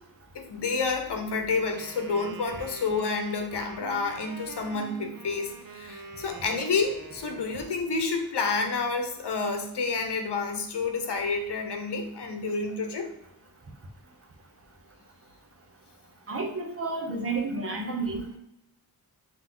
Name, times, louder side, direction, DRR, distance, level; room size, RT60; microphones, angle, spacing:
voice 1, 0.3-13.1, left 4 dB, 80° left, 5 dB, 0.9 m, -29 dB
Wind instrument woodwind instrument, 1.5-7.8, right 6 dB, 55° right, 0.6 m, -45 dB
voice 2, 16.3-18.4, right 3 dB, 35° right, 1 dB, 1.1 m, -31 dB
7.9 x 3.1 x 3.8 m, 0.79 s
wide cardioid pair, 180°, 40 cm